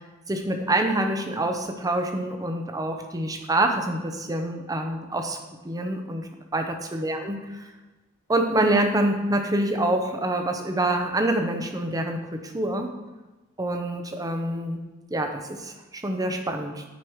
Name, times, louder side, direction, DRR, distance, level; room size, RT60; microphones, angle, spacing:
voice 1, 0.3-5.4 5.6-7.7 8.3-12.9 13.6-14.8 15.1-16.8, right 1 dB, 15° right, 5 dB, 0.7 m, -26 dB
9.3 x 4.8 x 4.6 m, 1.2 s
head